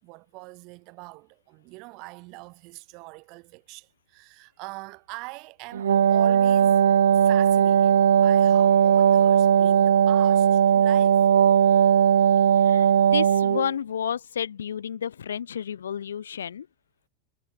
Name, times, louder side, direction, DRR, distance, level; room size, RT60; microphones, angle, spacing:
voice 1, 0.0-6.8 7.2-11.2, right 27 dB, 40° right, 5.6 m, -43 dB
Wind instrument woodwind instrument, 5.7-13.7, right 9 dB, 65° right, 0.4 m, -18 dB
voice 2, 12.6-16.7, left 8 dB, 65° left, 1.8 m, -31 dB
figure-of-eight pair, 90°, 0 cm